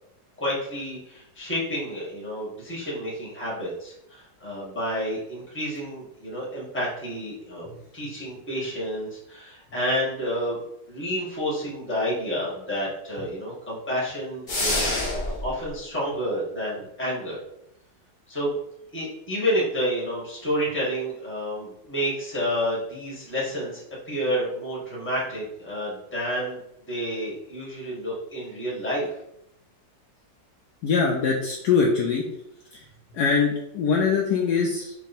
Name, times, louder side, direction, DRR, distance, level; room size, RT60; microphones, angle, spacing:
voice 1, 0.4-7.7 7.9-10.6 10.9-15.0 15.4-17.4 18.3-18.5 18.9-26.6 26.9-29.1, equal, 5° left, -5 dB, 1.2 m, -29 dB
sound 1, 14.5-15.5, left 2 dB, 35° left, 0.8 m, -26 dB
voice 2, 30.8-32.2 32.7-32.9 33.1-34.9, left 5 dB, 70° left, -2 dB, 1.0 m, -23 dB
3.3 x 2.7 x 4.1 m, 0.80 s
omnidirectional pair, 2.0 m